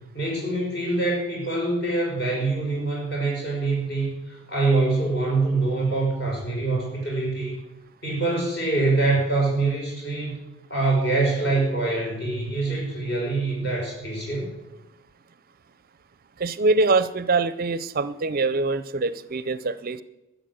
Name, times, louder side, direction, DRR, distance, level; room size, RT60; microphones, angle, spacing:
voice 1, 0.1-7.6 8.0-10.3 10.7-14.5, right 3 dB, 50° left, -2 dB, 5.9 m, -24 dB
voice 2, 16.4-20.0, right 3 dB, 40° right, 14 dB, 0.5 m, -24 dB
13.0 x 8.1 x 7.8 m, 0.95 s
head